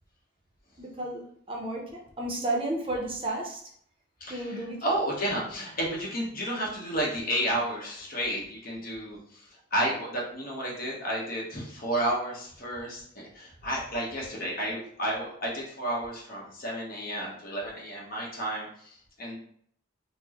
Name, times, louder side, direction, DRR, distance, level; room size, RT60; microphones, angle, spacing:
voice 1, 0.8-1.2 1.5-3.6 4.3-5.0, right 1 dB, 25° right, -1 dB, 0.6 m, -32 dB
voice 2, 4.2-9.4 9.7-19.4, right 1 dB, 45° left, -3 dB, 1.0 m, -32 dB
4.3 x 2.1 x 2.9 m, 0.64 s
head